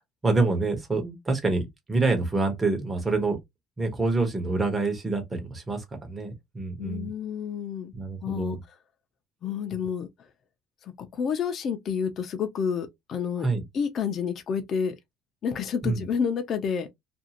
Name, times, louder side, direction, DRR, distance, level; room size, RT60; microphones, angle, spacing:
voice 1, 0.2-3.4 3.8-7.1 7.9-8.6 9.7-9.8 13.4-13.6 15.8-16.0, right 3 dB, 20° right, 0.9 m, -27 dB
voice 2, 6.8-7.9 8.2-8.6 9.4-10.1 10.8-13.5 13.7-14.9 15.4-16.9, left 7 dB, 45° left, 0.5 m, -29 dB
2.6 x 2.4 x 2.8 m
cardioid pair, 130°, 0 cm